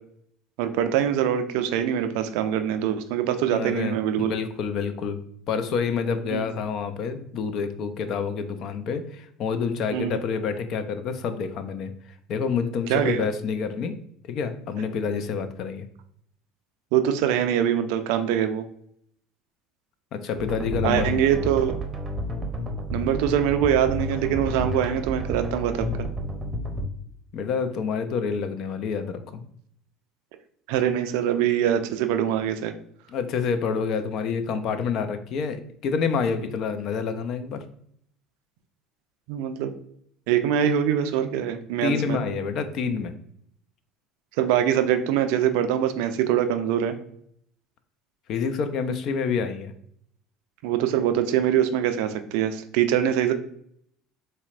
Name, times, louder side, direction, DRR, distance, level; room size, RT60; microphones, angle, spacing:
voice 1, 0.6-4.3 6.3-6.4 9.9-10.2 12.9-13.2 16.9-18.6 20.8-21.7 22.9-25.9 30.7-32.7 39.3-39.7 40.3-42.2 44.4-46.9 50.6-53.3, right 10 dB, 70° right, 9 dB, 0.3 m, -23 dB
voice 2, 3.5-5.2 5.5-11.9 12.3-14.0 14.3-15.8 20.1-21.4 27.3-29.4 33.1-37.6 41.8-43.1 48.3-49.7, left 5 dB, 55° left, 9 dB, 0.4 m, -28 dB
sound 1, 20.4-26.9, equal, 30° right, 0.6 m, -31 dB
4.0 x 2.1 x 2.4 m, 0.68 s
hypercardioid pair, 70°, 0 cm